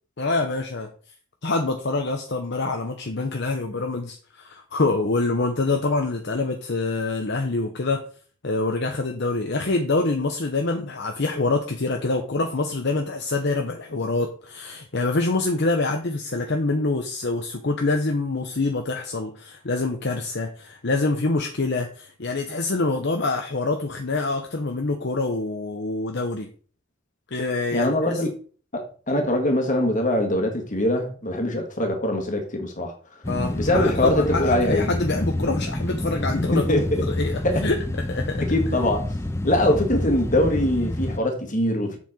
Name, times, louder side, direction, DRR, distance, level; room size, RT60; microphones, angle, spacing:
voice 1, 0.2-0.9 1.4-8.0 8.4-26.5 27.3-28.2 33.3-37.8 38.1-38.4, left 3 dB, 50° left, 0.9 m, -25 dB
voice 2, 27.7-28.3 28.7-32.9 33.5-34.9 36.5-37.0 37.4-37.6 38.4-39.1 39.4-42.0, left 1 dB, 35° left, 1.9 m, -23 dB
sound 1, 33.2-41.2, left 1 dB, 10° left, 0.4 m, -28 dB
7.6 x 5.7 x 4.4 m
head